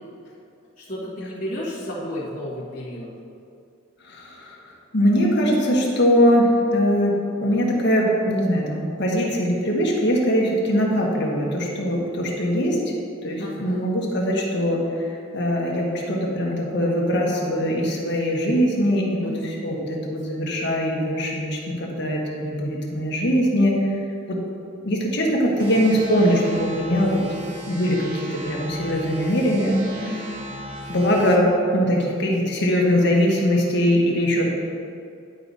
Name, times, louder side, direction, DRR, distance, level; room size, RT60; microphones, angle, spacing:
voice 1, 0.8-3.1 13.4-13.8 19.2-19.5 30.0-30.4, left 1 dB, 35° left, -10 dB, 1.9 m, -32 dB
voice 2, 4.0-4.5 4.9-7.1 7.4-12.9 13.2-14.8 15.3-19.3 19.6-23.7 24.3-24.4 24.8-27.2 27.7-30.1 30.9-31.5 31.7-34.5, equal, 55° left, -3 dB, 1.4 m, -21 dB
sound 1, 25.6-31.4, equal, 40° right, 0.7 m, -37 dB
11.0 x 4.8 x 4.1 m, 2.5 s
head